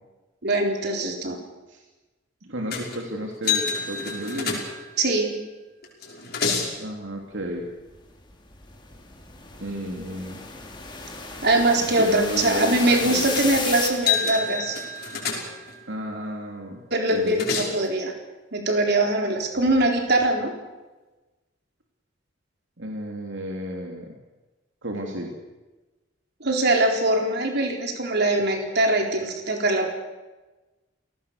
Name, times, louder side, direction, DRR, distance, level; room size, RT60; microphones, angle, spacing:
voice 1, 0.4-1.4 5.0-5.4 11.4-14.8 16.9-18.1 18.5-20.5 26.4-29.9, right 2 dB, 60° right, 2 dB, 4.1 m, -22 dB
voice 2, 2.4-4.6 6.8-7.7 9.6-10.4 12.0-13.2 15.9-16.8 17.1-17.5 22.8-24.1 24.8-25.3, equal, 75° right, 1 dB, 3.2 m, -32 dB
sound 1, 2.7-3.0 3.4-5.0 5.8-6.8 13.3-13.6 13.9-15.8 17.1-17.9, left 5 dB, 55° left, 5.5 m, -28 dB
sound 2, 7.9-13.9, left 4 dB, 25° left, 3.3 m, -34 dB
29.0 x 18.0 x 6.8 m, 1.2 s
head